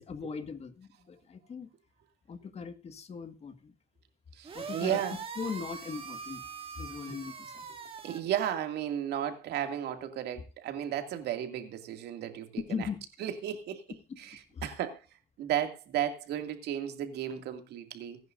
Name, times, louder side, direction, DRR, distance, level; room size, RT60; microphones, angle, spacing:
voice 1, 0.0-1.7 2.3-3.7 4.5-5.0 5.4-6.4 6.8-7.7 12.7-13.0 14.1-14.2 14.5-14.7, left 5 dB, 40° left, 1.8 m, -39 dB
sound 1, 4.4-8.2, right 5 dB, 35° right, 2.3 m, -42 dB
voice 2, 4.4-5.2 7.1-7.2 8.0-12.9 13.2-13.8 14.2-15.0 15.4-18.2, right 10 dB, 75° right, 2.3 m, -34 dB
24.0 x 10.5 x 2.6 m
cardioid pair, 110°, 17 cm